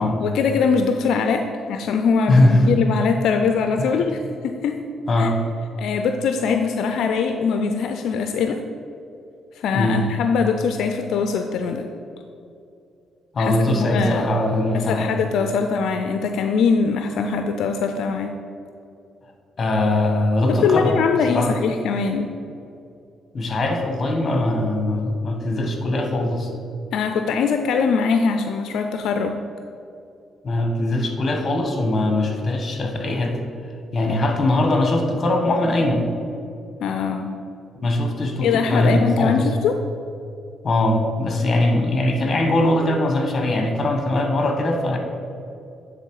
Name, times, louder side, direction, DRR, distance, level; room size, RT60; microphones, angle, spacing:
voice 1, 0.2-4.8 5.2-5.3 5.8-8.6 9.6-11.9 13.4-14.3 14.7-18.4 20.5-22.3 26.9-29.4 36.8-37.4 38.4-39.7, left 5 dB, 75° left, 6 dB, 0.4 m, -22 dB
voice 2, 2.3-2.6 3.8-3.9 5.1-5.4 9.7-10.0 13.3-15.1 19.6-20.9 21.3-21.5 23.3-26.5 30.4-33.4 33.9-36.0 37.8-39.5 40.6-45.0, left 1 dB, 35° left, 3 dB, 1.3 m, -21 dB
9.7 x 3.9 x 4.8 m, 2.5 s
cardioid pair, 90°, 0 cm